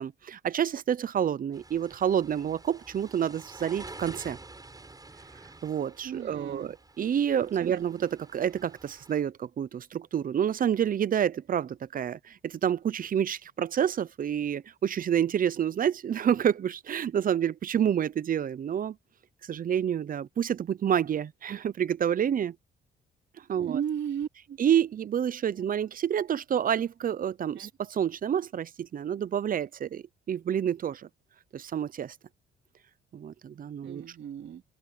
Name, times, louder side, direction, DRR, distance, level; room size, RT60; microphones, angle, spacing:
voice 1, 0.0-4.4 5.6-19.0 19.4-22.6 23.5-23.8 24.6-31.1 31.5-32.2 33.1-34.0, right 9 dB, 45° right, 0.7 m, -28 dB
sound 1, 1.5-9.2, right 2 dB, 20° right, 7.4 m, -49 dB
voice 2, 6.0-6.7 7.6-7.8 23.6-24.6 27.6-27.7 33.8-34.6, right 8 dB, 65° right, 2.8 m, -35 dB
open air
cardioid pair, 90°, 20 cm